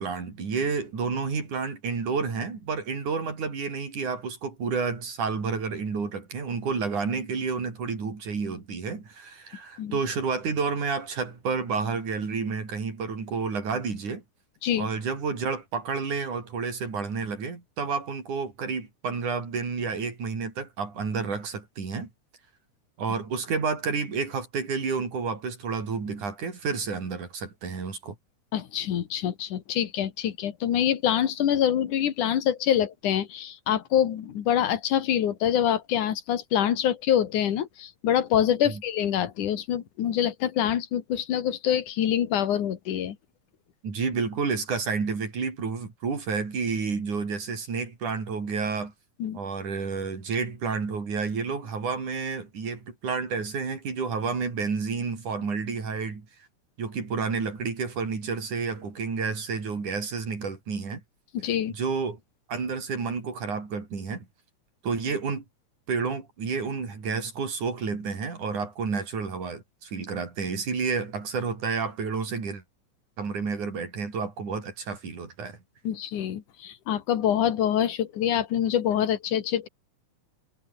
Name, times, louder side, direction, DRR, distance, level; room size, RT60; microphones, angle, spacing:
voice 1, 0.0-14.2 14.8-22.1 23.0-28.2 38.7-38.8 43.8-48.9 49.3-56.3 56.8-61.0 61.7-62.2 62.5-64.3 64.8-65.4 65.9-72.6 73.2-75.6, right 5 dB, 80° right, 6.4 m, -30 dB
voice 2, 28.5-43.2 49.2-49.4 61.3-61.7 75.8-79.7, left 10 dB, 85° left, 3.3 m, -25 dB
omnidirectional pair, 3.4 m